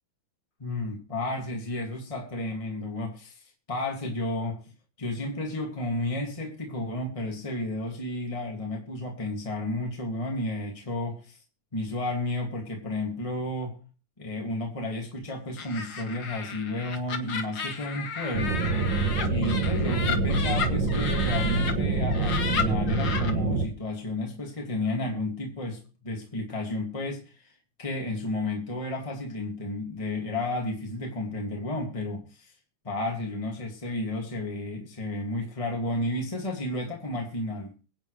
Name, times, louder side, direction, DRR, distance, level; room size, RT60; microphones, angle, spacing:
voice 1, 0.6-4.6 5.0-11.4 11.7-13.8 14.2-18.7 19.2-27.5 27.8-32.5 32.8-37.7, left 2 dB, 15° left, 2.2 m, -32 dB
Laughter, 15.6-21.7 22.1-23.3, left 6 dB, 80° left, 2.3 m, -33 dB
sound 1, 18.3-23.7, right 3 dB, 70° right, 2.1 m, -26 dB
23.5 x 9.0 x 3.2 m
omnidirectional pair, 2.2 m